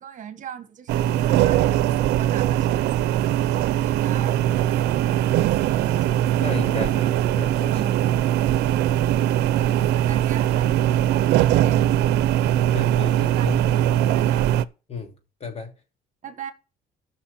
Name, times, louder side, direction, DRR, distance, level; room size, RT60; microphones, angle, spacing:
voice 1, 0.0-6.4 6.7-6.9 7.7-8.1 9.3-13.0 13.3-14.5 16.2-16.5, right 8 dB, 50° right, 1.5 m, -39 dB
sound 1, 0.9-14.7, right 12 dB, 85° right, 0.7 m, -21 dB
voice 2, 6.4-7.8 12.7-13.6 14.9-15.1 15.4-15.7, left 4 dB, 35° left, 3.0 m, -33 dB
14.5 x 6.3 x 4.3 m
cardioid pair, 110°, 17 cm